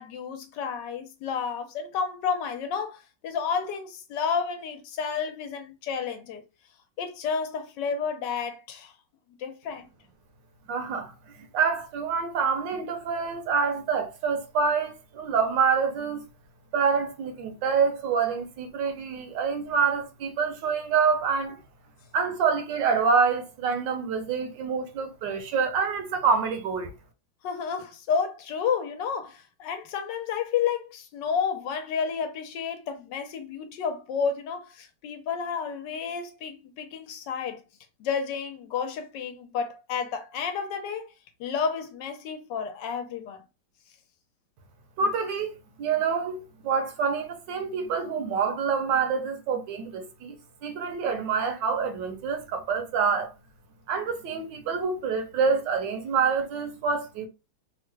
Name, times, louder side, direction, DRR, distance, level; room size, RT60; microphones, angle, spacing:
voice 1, 0.0-6.4 7.0-8.9 9.4-9.9 27.4-37.6 38.0-41.1 41.4-43.4, left 6 dB, 75° left, 1.3 m, -31 dB
voice 2, 10.7-16.3 16.7-21.6 22.1-26.9 45.0-53.3 53.9-57.3, right 5 dB, 75° right, 1.4 m, -27 dB
3.5 x 2.1 x 3.2 m
omnidirectional pair, 2.0 m